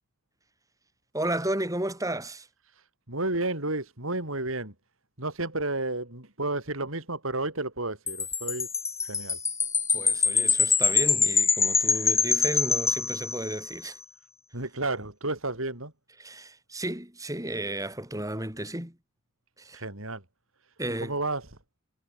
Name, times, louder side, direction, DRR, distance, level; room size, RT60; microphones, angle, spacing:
voice 1, 1.1-2.5 9.9-14.0 16.2-19.0 19.6-19.8 20.8-21.1, right 1 dB, 15° right, 6.6 m, -33 dB
voice 2, 3.1-4.7 5.2-8.7 9.0-9.4 14.5-15.9 19.7-20.2 21.0-21.4, right 2 dB, 70° right, 5.3 m, -31 dB
Wind chime, 8.1-13.7, left 5 dB, 15° left, 0.9 m, -25 dB
head